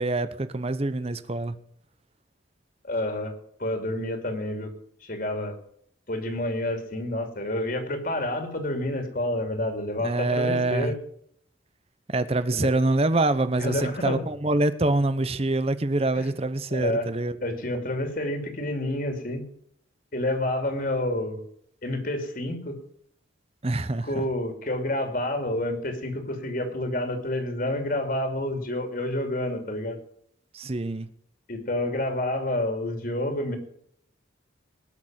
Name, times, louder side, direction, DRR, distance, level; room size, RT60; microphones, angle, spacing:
voice 1, 0.0-1.6 10.0-11.0 12.1-17.4 23.6-24.2 30.5-31.1, right 2 dB, 30° right, 0.8 m, -25 dB
voice 2, 2.8-3.3 3.6-4.7 5.0-5.6 6.1-11.0 12.5-12.7 13.6-14.2 16.1-16.3 16.7-17.1 17.4-19.4 20.1-21.4 21.8-22.7 24.0-30.0 31.5-33.6, left 1 dB, 45° left, 2.7 m, -29 dB
19.5 x 6.6 x 7.4 m
head